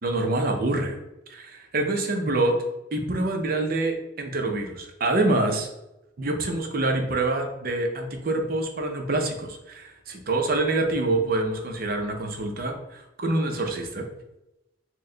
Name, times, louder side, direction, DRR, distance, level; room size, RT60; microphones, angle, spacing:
voice 1, 0.0-1.0 1.3-2.6 2.9-5.7 6.2-14.1, right 2 dB, 50° right, 4 dB, 0.6 m, -26 dB
4.5 x 2.1 x 3.8 m, 0.92 s
head